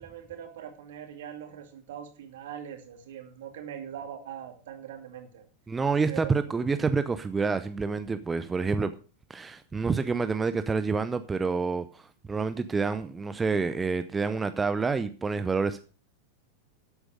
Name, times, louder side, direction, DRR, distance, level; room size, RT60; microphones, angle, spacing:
voice 1, 0.0-5.4 6.1-6.4, right 9 dB, 55° right, 5 dB, 2.4 m, -41 dB
voice 2, 5.7-8.9 9.3-15.8, right 4 dB, 15° right, 11 dB, 0.6 m, -28 dB
13.0 x 8.2 x 4.9 m, 0.38 s
figure-of-eight pair, 90°, 0 cm